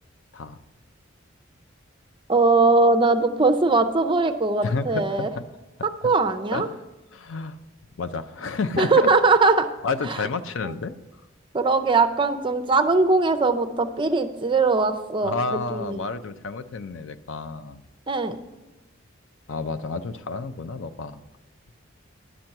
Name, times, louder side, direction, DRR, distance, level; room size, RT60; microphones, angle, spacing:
voice 1, 2.3-5.3 6.0-6.7 8.8-9.7 11.5-16.0 18.1-18.4, right 3 dB, 25° right, 8 dB, 0.5 m, -20 dB
voice 2, 4.6-5.4 6.0-6.1 6.5-6.7 7.1-7.6 8.0-9.1 9.8-10.9 15.2-17.8 19.5-21.2, left 4 dB, 75° left, 12 dB, 0.5 m, -30 dB
11.0 x 5.9 x 6.5 m, 1.1 s
head